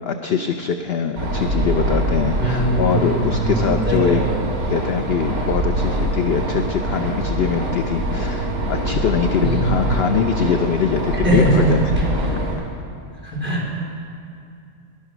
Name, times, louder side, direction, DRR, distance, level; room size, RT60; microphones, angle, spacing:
voice 1, 0.0-4.2 4.7-11.8, left 7 dB, 55° left, 6 dB, 0.7 m, -22 dB
sound 1, 1.2-12.5, right 1 dB, 65° right, 4.5 m, -24 dB
voice 2, 2.4-4.4 9.4-10.4 11.2-11.8 12.2-12.3 13.2-13.7, right 1 dB, 5° right, -6 dB, 4.5 m, -21 dB
19.0 x 12.0 x 6.1 m, 2.5 s
omnidirectional pair, 1.6 m